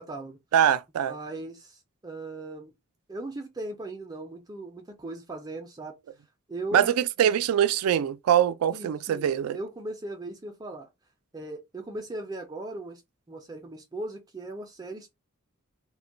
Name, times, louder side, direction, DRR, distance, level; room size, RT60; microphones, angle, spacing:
voice 1, 0.0-0.4 1.1-2.7 3.1-6.0 6.5-6.9 8.7-10.9 11.3-13.0 13.3-15.1, right 2 dB, 20° right, 0.4 m, -38 dB
voice 2, 0.5-1.1 6.7-9.6, right 9 dB, 90° right, 0.3 m, -23 dB
2.2 x 2.1 x 3.7 m
head